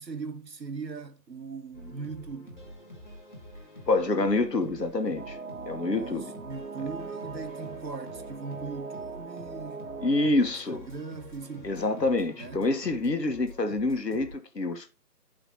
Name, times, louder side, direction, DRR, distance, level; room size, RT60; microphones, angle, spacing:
voice 1, 0.0-2.6 5.9-9.9 10.7-11.8 12.3-12.7, right 4 dB, 85° right, 1.3 m, -40 dB
sound 1, 1.7-14.3, equal, 30° left, 1.3 m, -47 dB
voice 2, 3.9-5.4 5.7-6.3 10.0-10.9 11.6-14.9, left 2 dB, 80° left, 1.5 m, -27 dB
sound 2, 5.2-10.3, right 4 dB, 60° right, 0.6 m, -40 dB
11.0 x 5.0 x 2.9 m
figure-of-eight pair, 175°, 49 cm